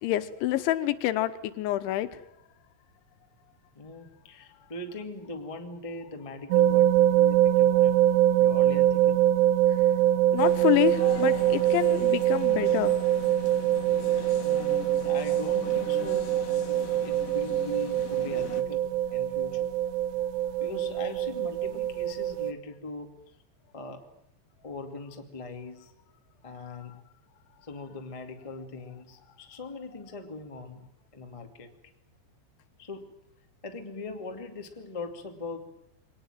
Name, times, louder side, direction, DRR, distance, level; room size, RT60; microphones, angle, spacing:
voice 1, 0.0-2.2 9.7-9.9 10.3-13.0, left 14 dB, 85° left, 11 dB, 3.4 m, -27 dB
voice 2, 3.7-8.0 8.4-9.2 11.5-11.6 14.4-14.7 15.0-16.3 16.7-19.7 20.6-23.4 23.7-24.0 24.6-25.9 26.4-27.0 27.6-31.7 32.8-33.1 33.6-35.6, left 3 dB, 25° left, 4 dB, 0.6 m, -41 dB
sound 1, 6.5-22.5, right 12 dB, 75° right, 3.1 m, -24 dB
sound 2, 10.4-18.6, left 8 dB, 55° left, 2.9 m, -42 dB
23.5 x 19.0 x 9.2 m, 0.79 s
omnidirectional pair, 5.3 m